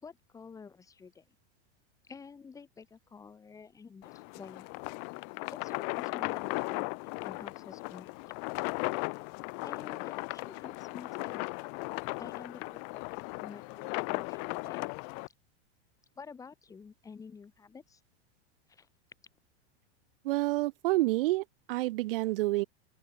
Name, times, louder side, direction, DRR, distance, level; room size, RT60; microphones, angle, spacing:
voice 1, 0.0-1.2 2.0-4.7 5.5-8.1 9.6-11.5 12.2-14.9 16.2-18.0 18.7-18.9, left 5 dB, 10° left, 2.5 m, -50 dB
sound 1, 4.0-15.3, left 40 dB or more, 30° left, 0.6 m, -37 dB
voice 2, 20.2-22.6, right 19 dB, 60° right, 0.5 m, -29 dB
open air
supercardioid pair, 170°, 32 cm